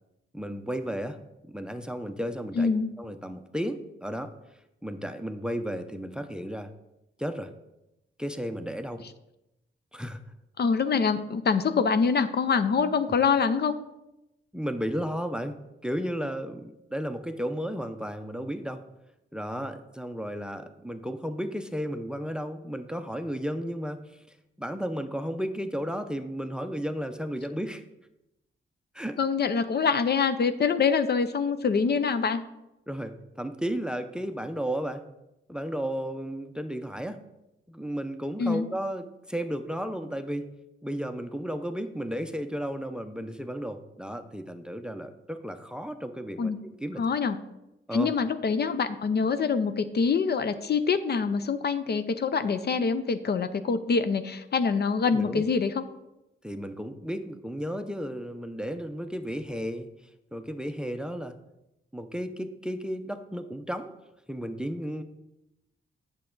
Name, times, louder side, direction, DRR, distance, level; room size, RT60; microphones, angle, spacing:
voice 1, 0.3-1.2 1.5-2.7 3.0-4.3 4.8-6.7 7.2-7.5 8.2-9.0 9.9-10.2 14.5-18.8 19.3-24.2 24.6-27.8 28.9-29.2 32.9-35.0 35.5-37.2 37.7-40.5 40.8-47.0 47.9-48.2 54.8-55.4 56.4-59.9 60.3-61.4 61.9-64.0 64.3-65.0, equal, 5° right, 9 dB, 0.5 m, -33 dB
voice 2, 2.6-2.9 10.6-13.7 29.2-32.4 38.4-38.7 46.4-46.6 47.0-47.4 47.9-55.8, left 5 dB, 50° left, 11 dB, 0.6 m, -25 dB
8.3 x 6.6 x 3.8 m, 0.91 s
cardioid pair, 90°, 21 cm